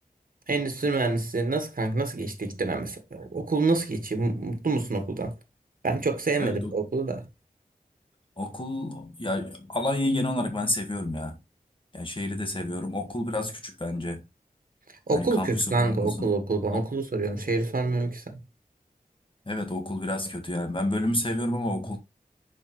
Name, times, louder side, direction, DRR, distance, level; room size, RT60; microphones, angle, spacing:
voice 1, 0.5-5.3 5.8-7.3 15.1-18.4, right 3 dB, 65° right, 1.6 m, -27 dB
voice 2, 6.4-6.9 8.4-11.4 11.9-14.2 15.1-16.3 16.7-16.9 19.4-22.0, left 1 dB, 35° left, 1.7 m, -30 dB
6.6 x 5.1 x 3.1 m
wide cardioid pair, 55°, 15 cm